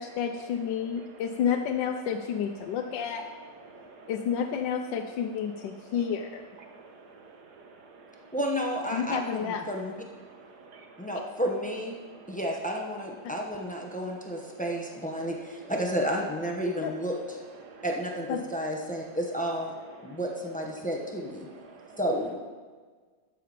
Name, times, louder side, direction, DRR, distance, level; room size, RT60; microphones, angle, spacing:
voice 1, 0.0-3.3 4.1-6.4 8.9-9.7 13.2-13.3 16.8-16.9 18.3-18.4, left 7 dB, 80° left, 4 dB, 1.3 m, -30 dB
voice 2, 3.6-4.1 6.6-8.3 10.3-11.1 12.0-12.4 17.6-17.8 20.1-20.2 21.5-22.0, right 4 dB, 65° right, 3 dB, 1.7 m, -51 dB
voice 3, 8.3-9.9 11.0-12.0 12.3-17.1 17.8-19.7 20.0-21.5 22.0-22.3, equal, 5° left, 0 dB, 0.8 m, -31 dB
13.0 x 6.8 x 5.1 m, 1.5 s
omnidirectional pair, 2.0 m